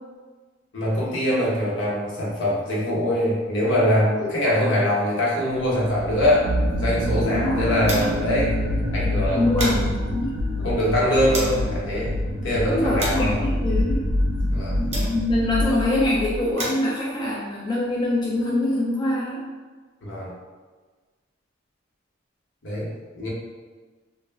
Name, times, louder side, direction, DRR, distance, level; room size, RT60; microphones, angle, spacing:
voice 1, 0.7-6.5 6.8-8.5 8.9-9.5 10.6-12.1 12.4-13.4 14.5-14.8 20.0-20.3 22.6-23.3, equal, 65° left, -6 dB, 0.8 m, -23 dB
sound 1, 5.9-16.4, left 1 dB, 70° right, 0.4 m, -26 dB
sound 2, 6.6-8.4 8.7-8.8 9.1-11.7 12.3-15.5 16.2-18.4, right 1 dB, 35° right, 0.7 m, -35 dB
voice 2, 7.2-7.7 9.3-10.7 12.7-14.1 14.8-19.4, left 1 dB, 20° left, -6 dB, 0.3 m, -24 dB
2.3 x 2.1 x 3.2 m, 1.4 s
head